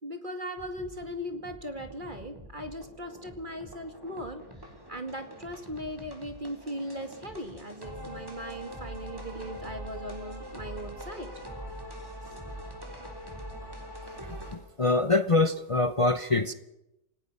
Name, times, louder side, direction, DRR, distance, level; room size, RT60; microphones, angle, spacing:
voice 1, 0.0-4.4 4.9-11.3, equal, 25° right, 6 dB, 2.3 m, -38 dB
sound 1, 0.6-14.6, equal, 10° right, 4.0 m, -43 dB
voice 2, 14.5-16.5, left 3 dB, 45° left, 10 dB, 0.4 m, -24 dB
27.5 x 18.5 x 5.6 m, 0.89 s
omnidirectional pair, 1.9 m